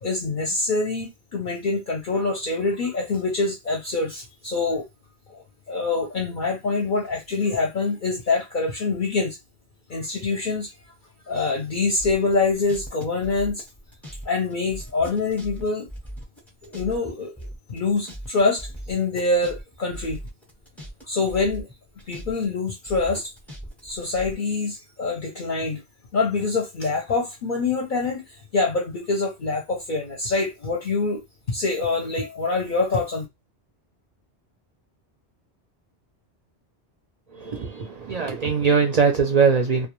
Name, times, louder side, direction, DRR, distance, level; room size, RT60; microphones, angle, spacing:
voice 1, 0.0-4.8 5.3-9.4 9.9-10.7 11.3-13.6 14.2-15.9 16.6-20.2 21.0-21.7 22.1-23.3 23.8-25.8 26.1-31.2 31.5-33.2, left 3 dB, 55° left, 0.7 m, -25 dB
sound 1, 12.0-14.2 14.5-17.1 17.4-21.0 21.3-22.5 22.9-24.3, equal, ahead, 0.5 m, -38 dB
voice 2, 37.3-39.9, right 5 dB, 55° right, 0.4 m, -21 dB
2.3 x 2.2 x 2.9 m
omnidirectional pair, 1.1 m